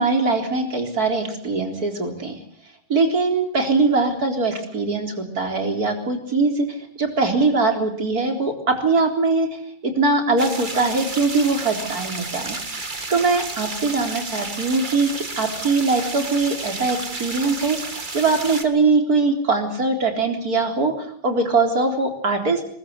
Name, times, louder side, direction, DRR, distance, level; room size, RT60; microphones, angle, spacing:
voice 1, 0.0-2.4 2.9-12.6 13.1-22.7, right 3 dB, 40° right, 4 dB, 4.3 m, -21 dB
sound 1, 10.4-18.6, right 3 dB, 25° right, 1.9 m, -32 dB
23.5 x 21.5 x 8.1 m, 0.62 s
omnidirectional pair, 2.4 m